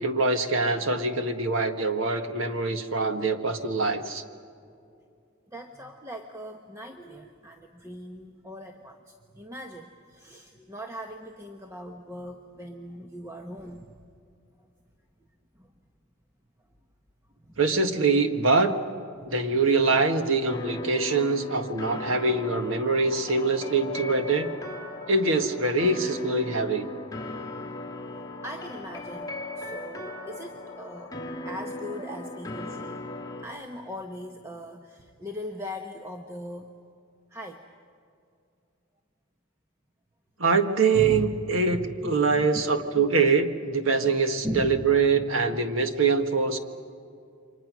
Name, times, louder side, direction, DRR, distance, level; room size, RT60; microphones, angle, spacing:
voice 1, 0.0-4.2 17.6-18.8 19.2-24.5 25.1-26.9 40.4-46.6, right 4 dB, 70° right, 7 dB, 1.6 m, -24 dB
voice 2, 5.5-14.0 14.6-14.7 15.2-15.3 15.5-15.7 17.4-17.6 19.2-19.6 28.4-31.1 31.4-33.0 33.4-36.7 37.3-37.7 40.9-41.4 41.7-42.6 43.0-43.1 44.0-44.2 44.4-45.7, equal, 15° right, 3 dB, 1.0 m, -39 dB
sound 1, 20.5-33.4, left 2 dB, 15° left, 2.5 m, -38 dB
29.5 x 25.0 x 6.2 m, 2.5 s
head